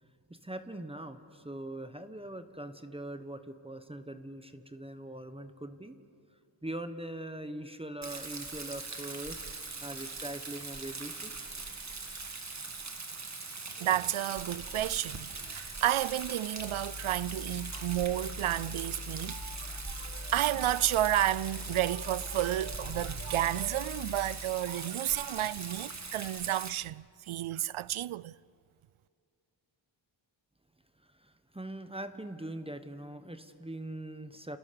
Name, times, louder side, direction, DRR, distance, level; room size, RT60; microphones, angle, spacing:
voice 1, 0.0-6.0 6.6-9.4 9.8-11.3 31.0-34.6, right 1 dB, 10° right, 1.1 m, -42 dB
Rain, 8.0-26.7, right 3 dB, 35° right, 2.0 m, -41 dB
voice 2, 13.8-28.4, right 13 dB, 90° right, 0.6 m, -31 dB
sound 1, 16.6-24.4, left 3 dB, 85° left, 4.8 m, -44 dB
29.5 x 29.0 x 6.9 m
wide cardioid pair, 150°, 48 cm